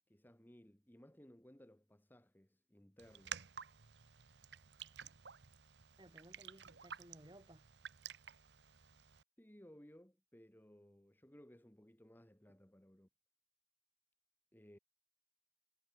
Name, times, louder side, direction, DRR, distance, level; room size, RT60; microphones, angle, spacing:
voice 1, 0.1-3.4 9.4-13.1 14.5-14.8, equal, 10° left, 1.2 m, -61 dB
Raindrop, 3.0-9.2, right 7 dB, 75° right, 1.2 m, -52 dB
voice 2, 6.0-7.7, right 1 dB, 25° right, 2.2 m, -60 dB
head